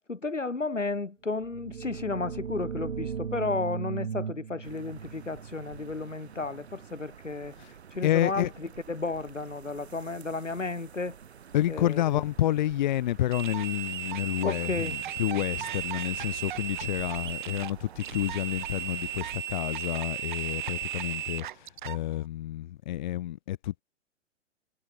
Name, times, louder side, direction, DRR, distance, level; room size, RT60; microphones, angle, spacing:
voice 1, 0.1-7.5 7.9-11.2 11.7-12.2 14.4-14.9, left 3 dB, 80° left, 2.5 m, -33 dB
sound 1, 1.3-6.9, right 7 dB, 75° right, 0.7 m, -38 dB
sound 2, 4.6-19.4, right 7 dB, 60° right, 1.6 m, -49 dB
voice 2, 8.0-8.5 11.5-23.8, left 13 dB, 40° left, 1.4 m, -29 dB
sound 3, 13.3-22.0, right 12 dB, 40° right, 1.2 m, -35 dB
figure-of-eight pair, 120°, 37 cm